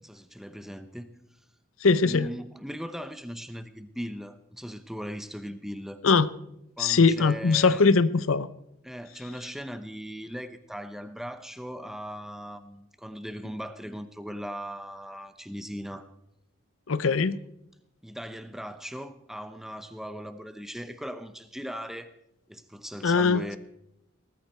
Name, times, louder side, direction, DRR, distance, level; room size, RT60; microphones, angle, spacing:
voice 1, 0.0-1.2 2.0-6.0 6.8-7.8 8.8-16.1 18.0-22.1 22.5-23.6, equal, ahead, 10 dB, 0.8 m, -39 dB
voice 2, 1.8-2.3 6.0-6.3 6.8-8.5 16.9-17.4 23.0-23.4, left 4 dB, 80° left, 16 dB, 0.7 m, -21 dB
19.5 x 13.5 x 4.4 m, 0.82 s
head